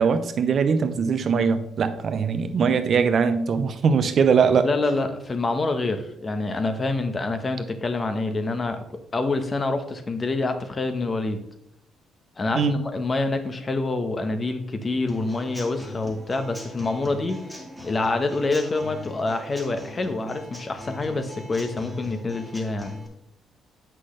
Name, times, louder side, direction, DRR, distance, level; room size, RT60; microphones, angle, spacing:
voice 1, 0.0-4.7 12.5-12.8, right 6 dB, 55° right, 9 dB, 0.8 m, -21 dB
voice 2, 4.6-8.8 9.1-11.4 12.4-17.4 17.8-22.9, left 3 dB, 30° left, 8 dB, 1.1 m, -26 dB
Human voice / Acoustic guitar / Drum, 15.1-23.1, left 2 dB, 10° left, 2.2 m, -40 dB
8.1 x 6.0 x 3.3 m, 0.75 s
cardioid pair, 85°, 0 cm